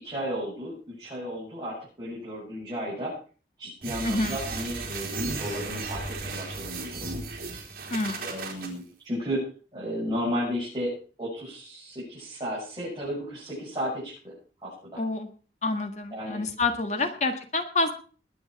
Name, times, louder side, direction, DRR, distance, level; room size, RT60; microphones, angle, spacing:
voice 1, 0.0-3.1 3.6-7.3 8.2-14.3 14.6-15.0 16.1-16.4, equal, 25° right, -9 dB, 8.0 m, -34 dB
sound 1, 3.8-8.7, right 3 dB, 55° right, 3.6 m, -35 dB
voice 2, 4.0-4.4 7.9-8.2 15.0-15.3 15.6-17.9, left 3 dB, 40° left, 7 dB, 1.8 m, -27 dB
21.0 x 8.5 x 4.8 m, 0.39 s
head